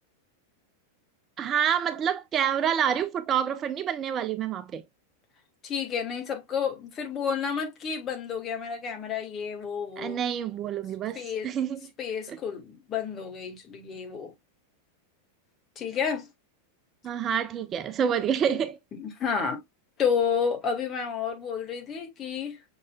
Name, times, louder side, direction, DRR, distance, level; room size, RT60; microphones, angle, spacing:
voice 1, 1.4-4.8 10.0-11.8 12.3-12.4 17.0-18.8, right 8 dB, 30° right, 0.4 m, -27 dB
voice 2, 5.6-10.2 11.1-11.5 12.0-14.3 15.7-16.3 19.0-19.6 20.0-22.6, left 6 dB, 30° left, 1.5 m, -30 dB
6.2 x 3.8 x 2.2 m
figure-of-eight pair, 90°, 0 cm